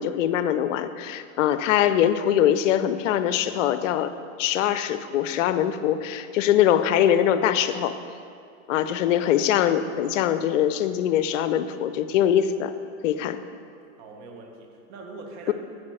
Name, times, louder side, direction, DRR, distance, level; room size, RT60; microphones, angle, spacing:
voice 1, 0.0-4.1 4.4-7.9 8.7-12.7 13.0-13.4 15.5-15.6, left 10 dB, 65° left, 11 dB, 0.6 m, -22 dB
voice 2, 14.0-15.5, right 3 dB, 45° right, 2 dB, 1.3 m, -42 dB
8.4 x 4.8 x 6.3 m, 2.3 s
hypercardioid pair, 120°, 40 cm